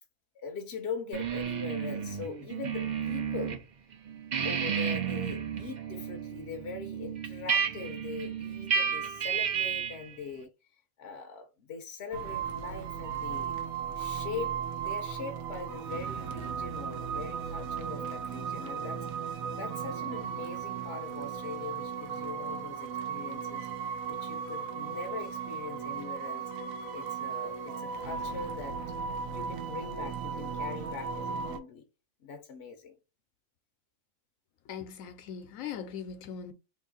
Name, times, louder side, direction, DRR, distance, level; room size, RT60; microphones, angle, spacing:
voice 1, 0.3-3.6 4.4-13.6 13.9-23.7 24.1-26.5 26.9-28.8 29.3-31.9 32.2-33.0, left 5 dB, 60° left, 0.8 m, -42 dB
sound 1, 1.1-3.6 3.9-10.1, right 7 dB, 50° right, 0.5 m, -32 dB
sound 2, 12.1-31.6, right 7 dB, 90° right, 1.1 m, -36 dB
voice 2, 34.7-36.5, left 7 dB, 85° left, 1.1 m, -40 dB
3.1 x 2.6 x 3.9 m
omnidirectional pair, 1.4 m